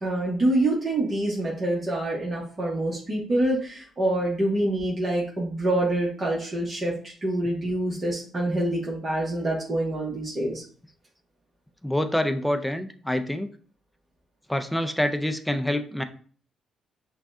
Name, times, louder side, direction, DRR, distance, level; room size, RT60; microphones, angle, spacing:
voice 1, 0.0-10.6, right 1 dB, 35° right, -5 dB, 1.2 m, -26 dB
voice 2, 11.8-13.5 14.5-16.0, left 1 dB, 5° left, 8 dB, 0.5 m, -26 dB
5.8 x 2.4 x 2.6 m, 0.43 s
cardioid pair, 90°, 0 cm